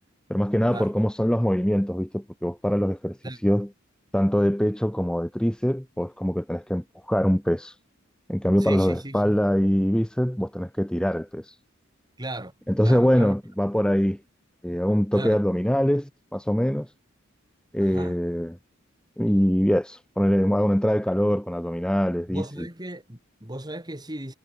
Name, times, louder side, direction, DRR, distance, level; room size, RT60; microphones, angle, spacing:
voice 1, 0.3-3.2 3.4-3.7 4.1-7.7 8.3-11.6 12.7-14.2 14.6-16.9 17.7-18.5 19.2-22.7, equal, 5° left, 1.0 m, -23 dB
voice 2, 8.6-9.4 12.2-12.5 12.8-13.3 15.1-15.4 17.8-18.2 22.3-24.3, right 1 dB, 20° right, 5.3 m, -36 dB
head